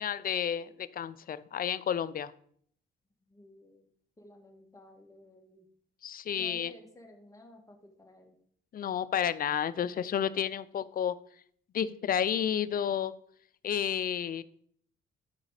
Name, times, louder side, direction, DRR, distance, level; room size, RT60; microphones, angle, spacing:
voice 1, 0.0-2.3 6.0-6.7 8.7-11.2 11.7-13.1 13.6-14.4, left 9 dB, 45° left, 15 dB, 0.5 m, -31 dB
voice 2, 3.3-3.9 4.2-5.7 6.3-8.4, left 2 dB, 15° left, 3 dB, 1.9 m, -54 dB
12.0 x 4.9 x 4.9 m, 0.63 s
cardioid pair, 90°, 20 cm